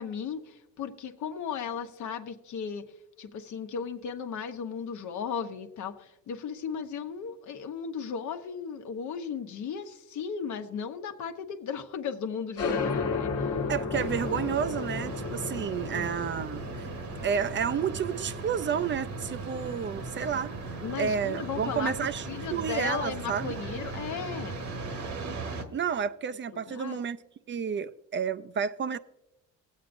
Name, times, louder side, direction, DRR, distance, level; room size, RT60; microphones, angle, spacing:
voice 1, 0.0-2.8 3.2-13.5 15.9-16.2 20.8-21.9 22.3-24.6 26.7-27.0, left 7 dB, 75° left, 1.0 m, -36 dB
sound 1, 12.6-19.8, left 4 dB, 55° left, 1.1 m, -34 dB
voice 2, 13.7-16.9 17.2-20.5 20.9-23.5 25.7-27.2 27.5-29.0, right 7 dB, 40° right, 0.4 m, -31 dB
sound 2, 13.9-25.6, right 3 dB, 70° right, 1.5 m, -38 dB
19.5 x 8.3 x 2.6 m
cardioid pair, 90°, 30 cm